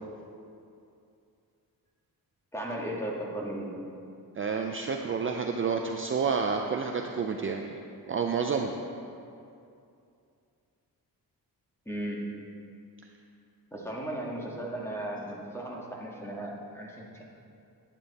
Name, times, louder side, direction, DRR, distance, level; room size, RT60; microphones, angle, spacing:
voice 1, 2.5-3.7 11.9-12.2 13.7-17.2, right 1 dB, 5° left, -3 dB, 1.9 m, -36 dB
voice 2, 4.4-7.8 8.1-8.7, right 5 dB, 35° right, 3 dB, 0.5 m, -29 dB
11.0 x 10.0 x 4.2 m, 2.5 s
wide cardioid pair, 140°, 37 cm